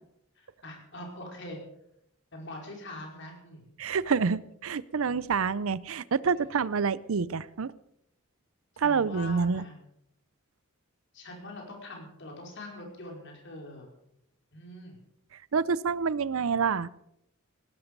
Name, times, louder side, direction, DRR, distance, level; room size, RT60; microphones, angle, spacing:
voice 1, 0.3-1.6 2.3-3.6 6.2-6.6 8.7-9.7 11.1-13.9 14.5-15.0, left 1 dB, 60° left, 0 dB, 4.8 m, -43 dB
voice 2, 3.8-7.7 8.8-9.6 15.5-16.9, right 5 dB, 75° right, 20 dB, 0.5 m, -27 dB
18.0 x 12.0 x 5.3 m, 0.78 s
head